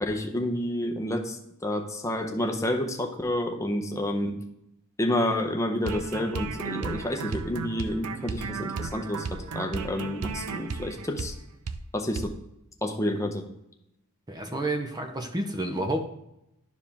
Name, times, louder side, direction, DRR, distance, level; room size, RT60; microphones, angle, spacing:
voice 1, 0.0-4.4 5.0-11.3 11.9-12.3 12.8-13.5, left 1 dB, 15° left, 3 dB, 0.8 m, -29 dB
sound 1, 5.8-11.4 11.7-11.8 12.2-12.3, right 4 dB, 80° right, 0.6 m, -34 dB
voice 2, 14.3-16.1, right 1 dB, 20° right, 5 dB, 0.7 m, -30 dB
11.5 x 4.9 x 3.5 m, 0.84 s
head